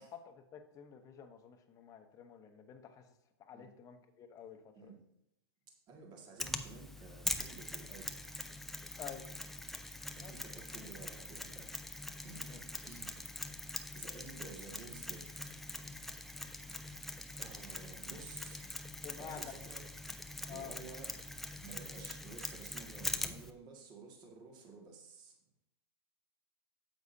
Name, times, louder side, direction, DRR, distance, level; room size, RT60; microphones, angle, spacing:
voice 1, 0.0-3.1 3.4-4.9 9.0-9.4 10.2-10.3 12.4-12.6 19.0-19.5 20.5-20.8, left 7 dB, 25° left, 6 dB, 1.1 m, -50 dB
voice 2, 5.9-8.4 10.2-11.7 12.2-15.6 17.3-18.6 19.2-19.9 20.5-21.2 21.6-25.4, right 4 dB, 30° right, 1 dB, 2.1 m, -53 dB
Mechanisms, 6.4-23.5, left 1 dB, ahead, 0.5 m, -43 dB
9.3 x 8.0 x 2.8 m, 0.81 s
hypercardioid pair, 115°, 14 cm